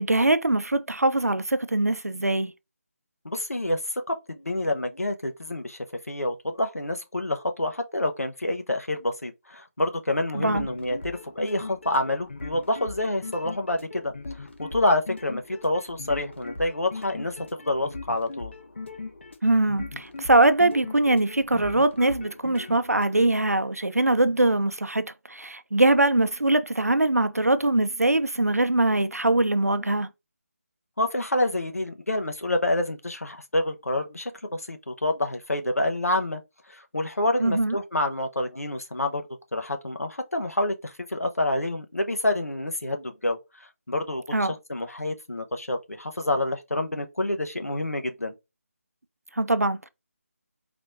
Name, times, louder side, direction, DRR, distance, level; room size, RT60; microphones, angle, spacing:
voice 1, 0.0-2.5 10.3-10.7 19.4-30.1 37.4-37.8 44.3-44.5 49.4-49.9, right 2 dB, 85° right, 0.6 m, -22 dB
voice 2, 3.2-5.8 6.1-14.1 14.4-18.5 31.0-36.4 36.7-39.2 39.5-48.3, left 1 dB, 75° left, 1.0 m, -28 dB
sound 1, 10.3-23.2, left 3 dB, 50° left, 0.8 m, -40 dB
4.1 x 3.0 x 2.4 m
figure-of-eight pair, 155°, 8 cm